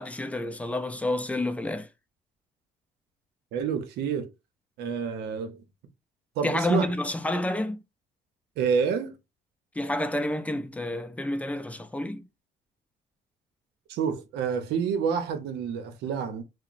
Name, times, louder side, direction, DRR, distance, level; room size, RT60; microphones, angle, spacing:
voice 1, 0.0-1.9 6.4-7.8 9.8-12.2, left 1 dB, 10° left, 0.4 m, -29 dB
voice 2, 3.5-4.3 4.8-5.6 6.4-6.9 8.6-9.1 13.9-16.4, right 6 dB, 80° right, 0.7 m, -28 dB
2.9 x 2.0 x 2.4 m
cardioid pair, 110°, 17 cm